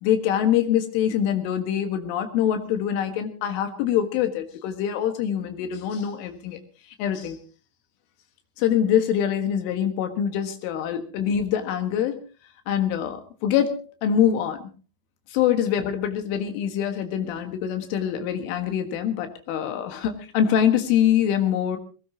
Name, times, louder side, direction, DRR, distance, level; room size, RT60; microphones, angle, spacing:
voice 1, 0.0-6.6 7.0-7.4 8.6-12.2 12.7-14.7 15.3-21.8, left 9 dB, 90° left, 6 dB, 4.2 m, -24 dB
21.5 x 19.0 x 2.9 m, 0.36 s
omnidirectional pair, 5.4 m